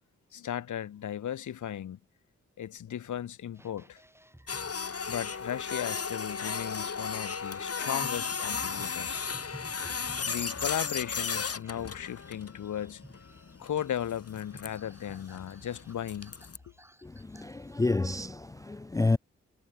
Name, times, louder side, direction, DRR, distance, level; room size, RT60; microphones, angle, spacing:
voice 1, 0.3-2.0 2.6-4.0 5.1-9.2 10.3-13.0 13.6-16.4, left 10 dB, 80° left, 0.9 m, -36 dB
sound 1, 3.5-18.3, right 1 dB, 10° right, 7.1 m, -53 dB
Printer, 4.5-16.6, left 5 dB, 55° left, 1.8 m, -35 dB
voice 2, 17.0-19.2, left 2 dB, 10° left, 0.3 m, -29 dB
supercardioid pair, 40°, 30 cm